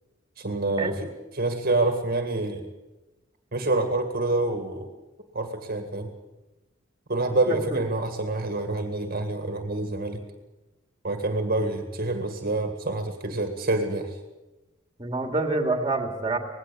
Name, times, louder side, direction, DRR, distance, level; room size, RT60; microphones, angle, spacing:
voice 1, 0.4-2.6 3.5-4.9 5.3-6.1 7.1-10.2 11.0-14.2, right 2 dB, 50° right, 6 dB, 1.8 m, -27 dB
voice 2, 7.5-7.8 15.0-16.4, right 2 dB, 20° right, 5 dB, 2.4 m, -27 dB
19.0 x 16.5 x 8.4 m, 1.1 s
head